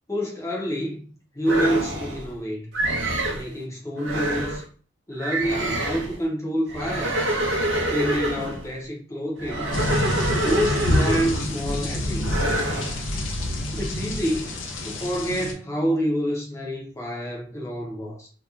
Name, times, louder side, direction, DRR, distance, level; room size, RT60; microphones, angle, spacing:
voice 1, 0.1-1.0 1.3-2.7 3.3-4.6 5.1-7.2 7.9-9.7 10.3-12.6 13.7-14.5 14.8-18.3, equal, 15° left, 0.5 m, -28 dB
sound 1, 1.5-2.3 2.7-3.5 4.0-4.6 5.2-6.2 6.7-8.6 9.4-11.6 12.2-13.0, right 1 dB, 75° right, 0.7 m, -26 dB
sound 2, 9.7-15.5, left 1 dB, 85° left, 0.5 m, -27 dB
2.8 x 2.1 x 2.3 m
head